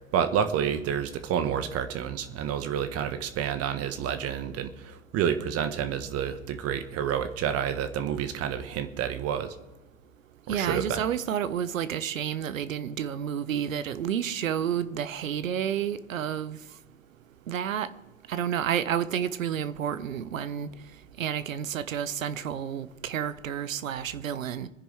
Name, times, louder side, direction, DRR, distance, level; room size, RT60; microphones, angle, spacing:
voice 1, 0.1-9.6 10.5-11.0, right 8 dB, 35° right, 1.5 m, -29 dB
voice 2, 10.5-16.6 17.5-17.9 18.3-20.7 21.2-24.7, right 9 dB, 75° right, 0.9 m, -30 dB
25.5 x 10.0 x 3.5 m
figure-of-eight pair, 85°, 40 cm